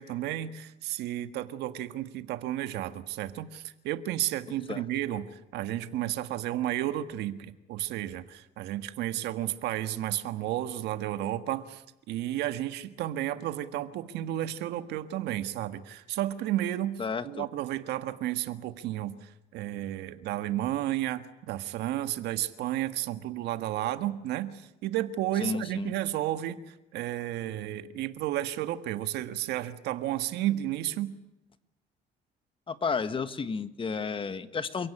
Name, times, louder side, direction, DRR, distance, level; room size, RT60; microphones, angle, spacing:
voice 1, 0.0-31.1, right 13 dB, 85° right, 11 dB, 1.6 m, -32 dB
voice 2, 17.0-17.5 25.4-25.9 32.7-34.9, left 5 dB, 30° left, 12 dB, 1.6 m, -32 dB
28.0 x 17.0 x 10.0 m, 0.92 s
cardioid pair, 110°, 17 cm